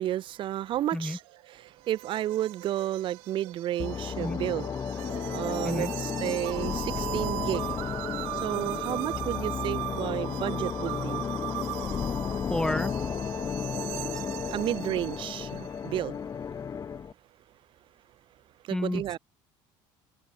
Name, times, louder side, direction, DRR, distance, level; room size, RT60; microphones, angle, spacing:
voice 1, 0.0-4.7 5.3-7.7 8.4-11.2 14.4-16.2 18.6-19.2, right 12 dB, 50° right, 1.3 m, -32 dB
sound 1, 1.2-15.8, right 40 dB or more, 85° right, 1.9 m, -39 dB
sound 2, 3.8-17.1, left 7 dB, 30° left, 2.0 m, -33 dB
voice 2, 12.5-12.9 18.7-19.2, left 1 dB, 5° left, 1.2 m, -30 dB
cardioid pair, 115°, 10 cm